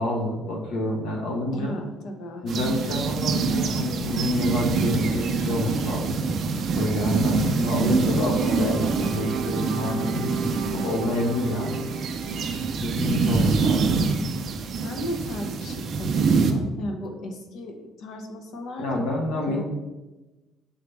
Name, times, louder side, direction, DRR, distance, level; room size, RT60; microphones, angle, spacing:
voice 1, 0.0-1.8 2.4-6.2 6.7-10.3 10.7-11.9 12.8-14.0 18.8-19.6, left 1 dB, 80° left, 0 dB, 1.3 m, -28 dB
voice 2, 1.5-3.3 14.8-19.1 19.5-19.6, left 1 dB, 50° left, 4 dB, 0.8 m, -36 dB
sound 1, 2.5-16.5, right 4 dB, 35° right, 0.5 m, -25 dB
sound 2, 8.0-14.2, right 5 dB, 65° right, 0.8 m, -38 dB
7.3 x 4.0 x 3.4 m, 1.1 s
cardioid pair, 175°, 0 cm